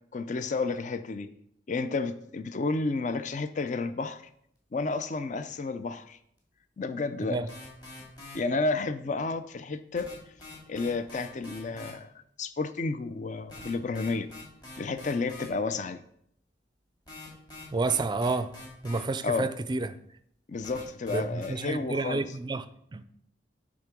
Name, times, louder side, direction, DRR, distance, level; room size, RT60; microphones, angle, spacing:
voice 1, 0.1-1.3 1.7-4.2 4.7-6.2 6.8-7.4 8.3-10.1 10.7-12.1 12.4-14.3 14.8-16.0 19.2-19.5 20.5-22.2, left 3 dB, 45° left, 0.5 m, -31 dB
sound 1, 7.5-8.4 9.9-11.9 13.3-15.5 17.1-19.0 20.6-21.5, left 2 dB, 25° left, 2.5 m, -45 dB
voice 2, 17.7-18.5 18.8-20.0 21.1-22.6 22.9-23.0, right 3 dB, 25° right, 0.4 m, -29 dB
10.0 x 3.7 x 6.1 m
head